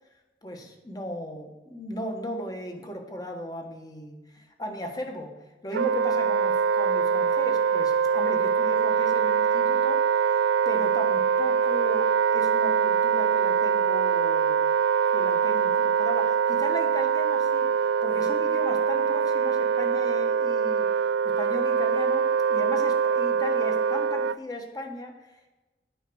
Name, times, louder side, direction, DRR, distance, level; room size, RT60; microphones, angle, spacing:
voice 1, 0.4-5.4 5.6-14.6 15.1-20.9 21.2-25.6, equal, 20° left, 3 dB, 1.3 m, -37 dB
Wind instrument woodwind instrument, 5.7-24.4, right 6 dB, 85° right, 0.3 m, -23 dB
9.1 x 5.8 x 7.8 m, 1.1 s
head